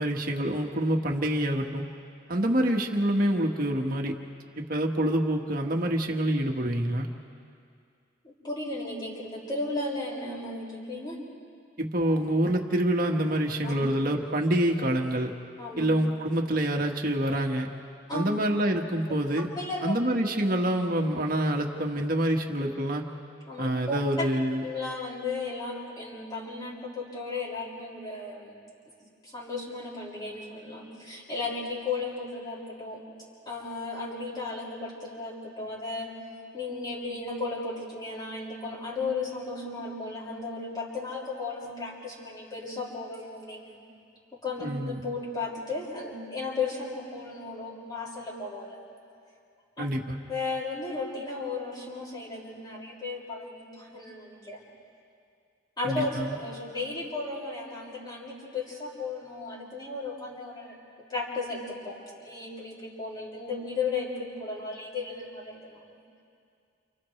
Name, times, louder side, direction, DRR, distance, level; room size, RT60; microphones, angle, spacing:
voice 1, 0.0-1.8 2.3-4.1 4.6-7.1 11.8-15.3 15.8-17.7 18.1-19.5 19.8-23.1 23.6-24.6 44.6-45.0 49.8-50.2 55.8-56.4, right 1 dB, 50° right, 2 dB, 1.7 m, -26 dB
voice 2, 8.2-11.2 13.6-13.7 15.6-15.9 18.1-18.2 19.1-19.2 19.6-19.9 23.5-24.0 24.6-28.5 29.2-33.0 33.5-36.1 36.5-43.8 44.3-48.8 49.8-49.9 50.3-54.6 55.8-60.8 61.1-66.0, left 3 dB, 25° left, -6 dB, 6.1 m, -35 dB
30.0 x 30.0 x 3.3 m, 2.4 s
head